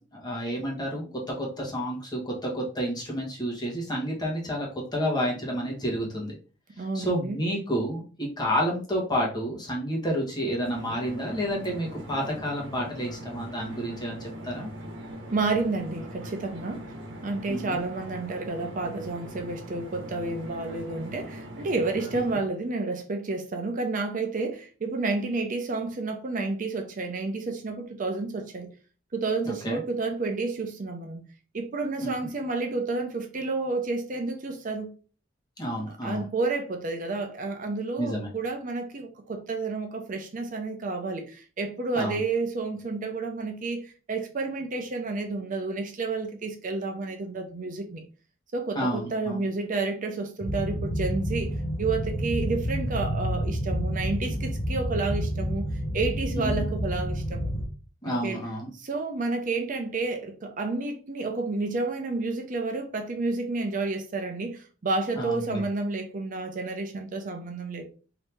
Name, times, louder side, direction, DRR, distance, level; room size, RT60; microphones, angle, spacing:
voice 1, 0.1-1.0 1.4-4.7 4.9-6.4 6.9-14.7 17.5-17.8 22.1-22.2 29.5-29.8 32.0-32.1 35.6-36.2 38.0-38.3 41.9-42.2 48.7-49.4 56.4-56.5 58.0-58.7 65.2-65.6, equal, 20° left, 1.1 m, -30 dB
voice 2, 6.8-7.4 15.3-16.8 17.2-28.7 29.1-31.2 31.5-34.9 36.0-48.0 48.5-55.6 55.9-57.5 58.1-58.4 58.8-67.9, right 3 dB, 45° right, 0.5 m, -30 dB
sound 1, 10.6-22.4, right 1 dB, 80° right, 1.0 m, -41 dB
sound 2, 50.4-57.7, equal, 70° left, 0.8 m, -29 dB
2.9 x 2.7 x 3.3 m
head